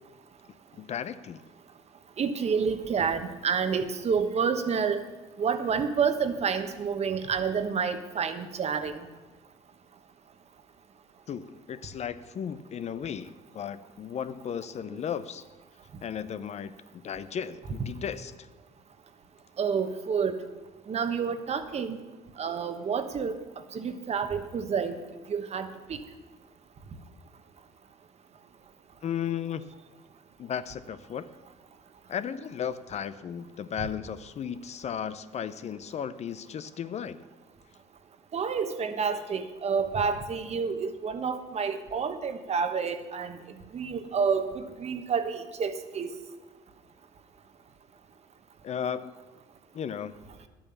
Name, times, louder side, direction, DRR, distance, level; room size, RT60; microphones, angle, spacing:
voice 1, 0.8-1.4 11.3-15.4 16.0-16.8 17.0-18.3 29.0-29.6 30.4-31.2 32.1-37.2 48.6-49.1 49.7-50.1, left 8 dB, 45° left, 13 dB, 0.6 m, -35 dB
voice 2, 2.2-5.0 5.4-8.9 19.6-20.3 20.9-22.0 22.4-23.4 23.7-25.0 25.3-26.0 38.3-43.4 43.7-46.1, right 6 dB, 45° right, 9 dB, 1.2 m, -29 dB
11.0 x 8.8 x 7.0 m, 1.2 s
supercardioid pair, 85°, 15 cm